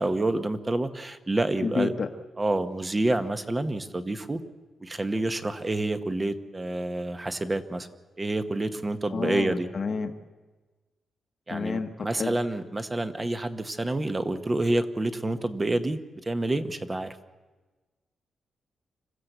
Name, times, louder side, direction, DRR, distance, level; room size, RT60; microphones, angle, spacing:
voice 1, 0.0-1.9 2.4-4.4 4.8-7.9 8.2-9.7 11.5-17.2, right 2 dB, 20° right, 9 dB, 1.1 m, -28 dB
voice 2, 1.6-2.1 9.1-10.1 11.5-12.3, left 5 dB, 40° left, 6 dB, 1.2 m, -30 dB
26.0 x 15.0 x 8.1 m, 1.3 s
wide cardioid pair, 140°, 0 cm